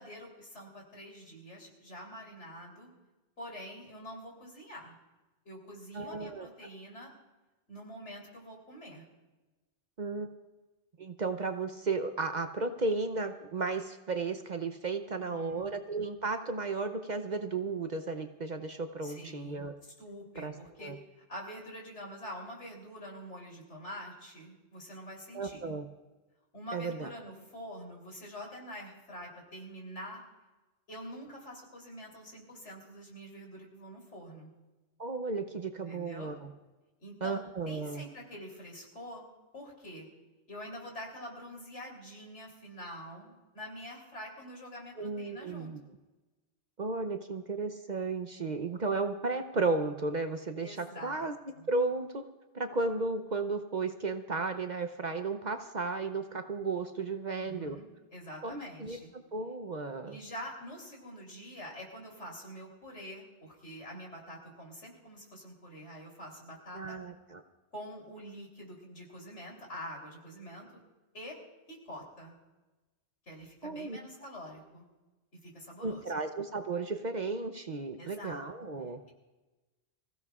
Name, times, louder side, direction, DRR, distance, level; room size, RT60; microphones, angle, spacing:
voice 1, 0.0-2.9 3.4-5.0 5.5-7.1 7.7-9.1 15.1-15.7 19.0-19.6 20.0-25.7 26.5-30.2 30.9-34.5 35.9-36.3 37.0-37.4 37.7-40.1 40.5-45.7 50.6-51.3 51.6-51.7 57.3-59.1 60.1-67.0 67.7-70.8 71.1-71.4 71.7-72.3 73.3-74.8 75.3-76.1 78.0-78.4, equal, 80° left, -1 dB, 3.8 m, -46 dB
voice 2, 5.9-6.5 10.0-10.3 11.0-19.7 20.4-20.5 20.8-21.0 25.3-25.9 26.7-27.1 35.0-36.5 37.2-38.0 45.0-45.8 46.8-51.3 51.7-52.2 52.5-57.8 58.4-60.2 66.7-67.4 73.6-74.0 75.8-79.0, right 3 dB, 45° right, 7 dB, 0.8 m, -34 dB
26.0 x 16.0 x 2.4 m, 1.2 s
omnidirectional pair, 1.2 m